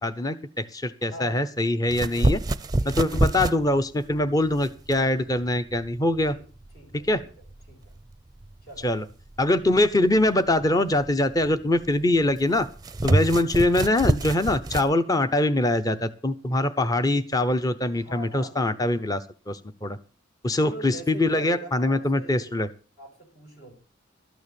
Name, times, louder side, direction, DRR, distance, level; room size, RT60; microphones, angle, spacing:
voice 1, 0.0-2.4 2.8-6.3 7.1-7.2 8.8-9.0 9.4-12.7 13.0-19.2 19.5-20.0 20.4-22.7, left 1 dB, 20° left, 11 dB, 0.7 m, -23 dB
voice 2, 1.1-1.4 2.0-2.3 2.8-3.1 6.3-6.5 6.7-7.3 7.7-8.0 8.6-8.9 9.6-9.7 17.9-18.5 20.6-22.5 23.0-23.7, equal, 55° left, 1 dB, 6.6 m, -42 dB
sound 1, 1.9-14.9, right 2 dB, 20° right, 0.6 m, -28 dB
13.0 x 9.4 x 6.9 m, 0.37 s
head